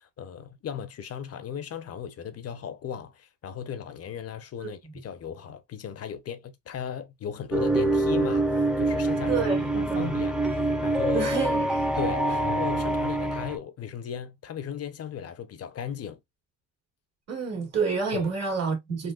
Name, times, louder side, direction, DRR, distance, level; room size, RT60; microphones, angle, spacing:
voice 1, 0.0-9.5 9.7-11.3 12.0-16.2 18.1-18.3, left 8 dB, 50° left, 0.6 m, -36 dB
sound 1, 7.5-13.6, right 2 dB, 5° right, 0.6 m, -25 dB
voice 2, 9.3-10.2 11.1-11.9 17.3-19.1, right 5 dB, 55° right, 1.8 m, -29 dB
3.8 x 2.3 x 2.3 m
cardioid pair, 90°, 30 cm